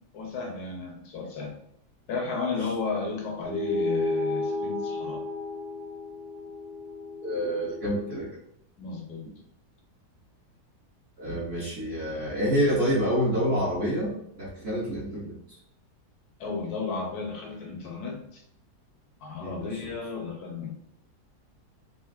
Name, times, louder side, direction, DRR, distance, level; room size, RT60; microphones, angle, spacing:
voice 1, 0.1-1.6 2.1-5.2 8.8-9.3 16.4-18.4 19.2-20.7, left 4 dB, 70° left, 1 dB, 1.1 m, -33 dB
sound 1, 3.4-8.2, left 2 dB, 75° right, 1.2 m, -32 dB
voice 2, 7.2-8.3 11.2-15.6 19.4-19.7, equal, 55° right, -7 dB, 0.7 m, -28 dB
3.4 x 2.4 x 2.3 m, 0.74 s
omnidirectional pair, 1.8 m